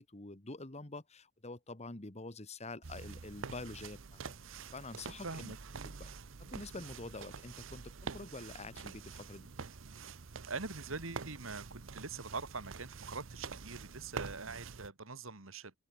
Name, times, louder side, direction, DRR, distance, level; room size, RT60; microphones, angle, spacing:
voice 1, 0.0-4.3 4.7-5.5 5.8-6.1 6.4-9.5, left 2 dB, 35° left, 1.8 m, -47 dB
sound 1, 2.8-14.9, right 5 dB, 70° right, 0.8 m, -47 dB
voice 2, 5.2-5.6 10.5-15.8, right 4 dB, 85° right, 2.5 m, -43 dB
open air
head